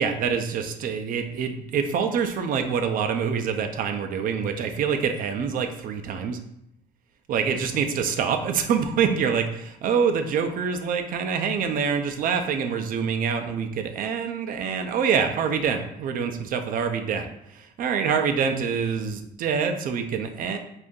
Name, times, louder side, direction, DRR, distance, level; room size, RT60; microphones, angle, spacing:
voice 1, 0.0-6.4 7.3-20.6, right 6 dB, 55° right, 6 dB, 0.4 m, -26 dB
2.6 x 2.5 x 3.6 m, 0.80 s
cardioid pair, 110°, 17 cm